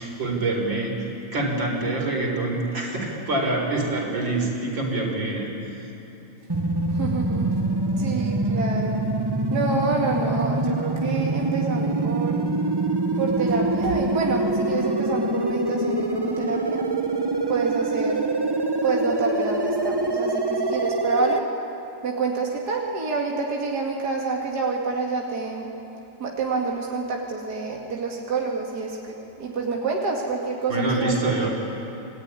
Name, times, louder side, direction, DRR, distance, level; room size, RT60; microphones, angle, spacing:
voice 1, 0.0-5.5 30.7-31.5, right 2 dB, 90° right, 0 dB, 5.3 m, -26 dB
sound 1, 6.5-21.4, right 2 dB, 20° right, 0.6 m, -25 dB
voice 2, 6.9-7.6 8.0-9.0 9.5-12.4 13.2-16.8 17.5-18.3 18.8-21.5 22.0-25.7 26.2-31.5, right 4 dB, 60° right, -2 dB, 2.8 m, -28 dB
27.5 x 19.5 x 9.8 m, 3.0 s
omnidirectional pair, 2.0 m